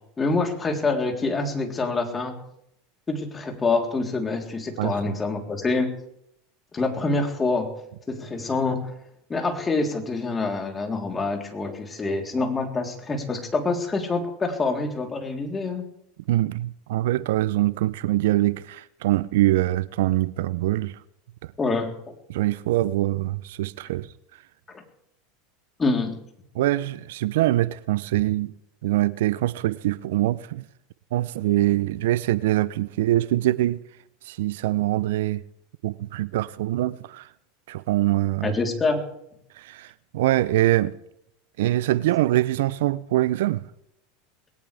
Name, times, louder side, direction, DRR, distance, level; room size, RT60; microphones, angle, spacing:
voice 1, 0.2-2.4 3.1-5.9 6.7-7.7 8.1-8.9 9.3-15.8 21.6-22.1 24.7-24.8 25.8-26.2 38.4-39.0, left 3 dB, 20° left, 3.7 m, -26 dB
voice 2, 4.8-5.1 16.3-20.9 22.3-24.1 26.5-28.5 28.8-30.6 31.1-33.8 34.3-35.4 35.8-37.3 37.7-38.5 39.6-41.0 41.6-43.6, right 15 dB, 70° right, 0.6 m, -23 dB
20.5 x 18.5 x 3.5 m
hypercardioid pair, 85°, 0 cm